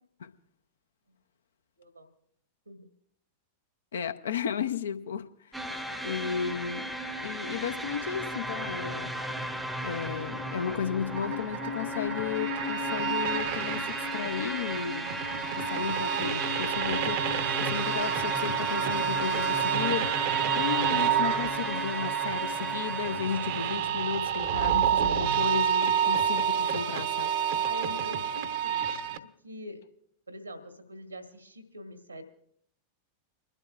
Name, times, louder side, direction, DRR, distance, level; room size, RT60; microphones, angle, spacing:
voice 1, 1.8-2.1 2.7-2.9 8.6-8.8 20.4-20.8 26.0-26.5 27.6-28.8 29.4-29.8 30.3-32.2, equal, 85° right, 7 dB, 1.6 m, -44 dB
voice 2, 3.9-5.3 6.0-6.9 7.2-9.1 9.8-15.1 15.7-17.3 17.6-27.4, left 7 dB, 65° left, 10 dB, 0.7 m, -34 dB
sound 1, 5.5-23.7, left 1 dB, 5° right, 0.8 m, -35 dB
sound 2, 11.1-29.2, right 9 dB, 50° right, 0.8 m, -29 dB
30.0 x 12.0 x 2.4 m, 0.67 s
figure-of-eight pair, 90°, 0 cm